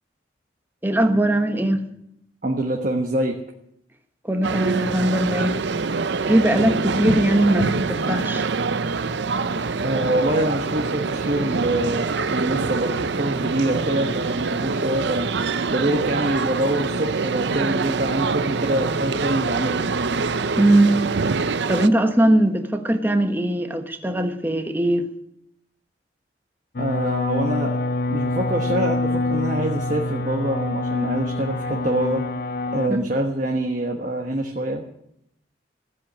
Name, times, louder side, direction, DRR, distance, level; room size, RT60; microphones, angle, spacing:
voice 1, 0.8-1.8 4.2-5.6 6.2-8.4 20.6-21.0 21.7-25.1 32.9-33.0, right 1 dB, 10° right, 6 dB, 1.2 m, -20 dB
voice 2, 2.4-3.4 9.8-15.3 15.7-19.8 26.8-27.8 28.1-32.2 32.7-34.8, right 1 dB, 45° right, 1 dB, 1.3 m, -25 dB
sound 1, 4.4-21.9, right 4 dB, 70° right, 0.6 m, -25 dB
sound 2, 26.8-32.9, left 2 dB, 50° left, 0.6 m, -25 dB
15.0 x 7.8 x 10.0 m, 0.78 s
head